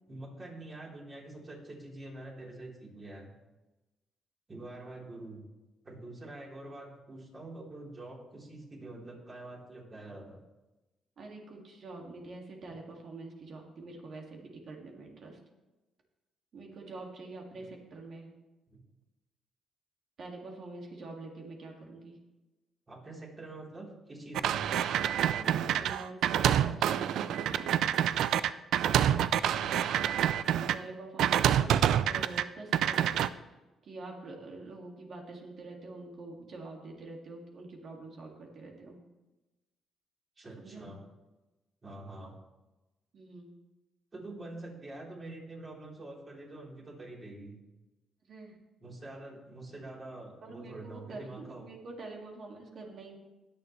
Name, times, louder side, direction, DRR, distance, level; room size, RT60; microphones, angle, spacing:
voice 1, 0.1-3.3 4.5-5.4 5.8-10.4 17.5-17.7 18.7-18.8 22.9-24.6 28.8-29.7 40.4-41.0 41.8-42.3 44.1-47.6 48.8-51.7, right 2 dB, 30° right, -3 dB, 3.9 m, -46 dB
voice 2, 11.2-15.4 16.5-18.3 20.2-22.2 25.3-27.8 29.3-29.4 30.5-33.6 33.8-39.0 40.6-40.9 43.1-43.5 48.3-48.6 50.4-53.2, right 3 dB, 55° right, 0 dB, 2.3 m, -46 dB
sound 1, 24.3-30.7 31.2-32.4 32.7-33.3, right 10 dB, 80° right, 0.4 m, -27 dB
20.0 x 6.9 x 3.3 m, 1.1 s
cardioid pair, 90°, 0 cm